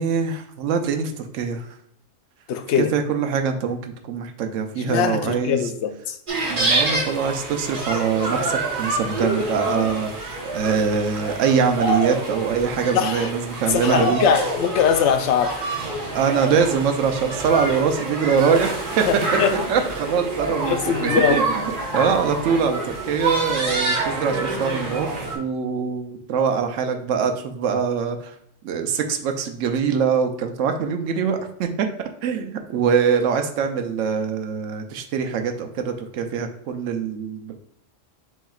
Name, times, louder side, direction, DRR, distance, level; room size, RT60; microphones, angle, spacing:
voice 1, 0.0-1.7 2.9-5.6 6.5-14.2 16.1-19.1 19.7-20.7 21.0-21.5 21.9-28.3 28.6-31.9 32.2-37.5, right 6 dB, 80° right, 0.9 m, -23 dB
voice 2, 2.5-2.9 4.8-6.2 12.9-13.3 13.7-15.6 19.0-19.5 20.6-21.7, left 7 dB, 70° left, 0.8 m, -22 dB
sound 1, 6.3-25.3, right 2 dB, 45° right, 1.2 m, -27 dB
6.2 x 3.6 x 2.4 m
omnidirectional pair, 1.3 m